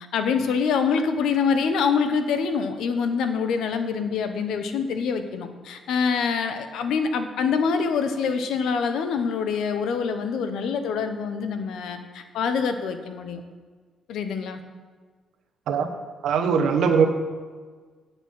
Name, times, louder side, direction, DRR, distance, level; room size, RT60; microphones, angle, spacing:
voice 1, 0.1-13.4 14.1-14.6, left 5 dB, 80° left, 8 dB, 0.9 m, -25 dB
voice 2, 16.2-17.1, right 6 dB, 75° right, 5 dB, 1.1 m, -20 dB
9.3 x 7.0 x 5.6 m, 1.5 s
cardioid pair, 90°, 0 cm